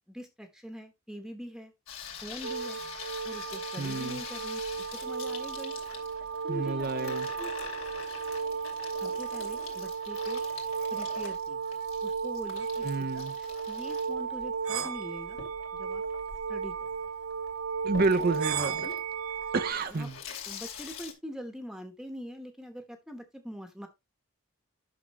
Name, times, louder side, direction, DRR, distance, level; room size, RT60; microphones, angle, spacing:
voice 1, 0.1-1.7 2.2-2.8 3.2-5.7 6.4-7.5 9.0-10.4 10.9-11.6 12.0-15.4 15.8-16.0 16.5-16.7 17.8-17.9 18.8-19.0 19.9-20.1 20.5-23.9, equal, ahead, 1.0 m, -43 dB
Water tap faucet / Sink (filling or washing), 1.9-21.1, left 6 dB, 70° left, 2.7 m, -45 dB
sound 1, 2.4-19.7, right 6 dB, 80° right, 1.9 m, -34 dB
voice 2, 3.8-4.2 6.5-7.3 12.8-13.4 17.9-18.9 19.5-20.2, right 3 dB, 40° right, 0.5 m, -30 dB
9.6 x 6.2 x 3.0 m
head